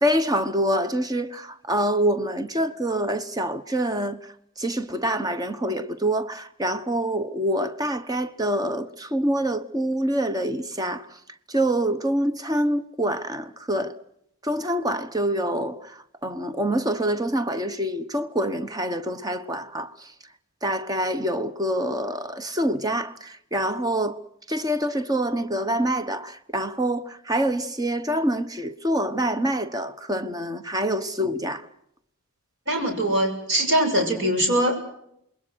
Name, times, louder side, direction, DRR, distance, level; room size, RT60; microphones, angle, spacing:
voice 1, 0.0-4.2 4.6-11.1 11.5-14.0 14.4-20.1 20.6-24.2 24.5-31.7, right 1 dB, 20° right, 1.1 m, -26 dB
voice 2, 32.7-34.8, equal, 60° right, 7.1 m, -22 dB
27.5 x 21.5 x 6.4 m
head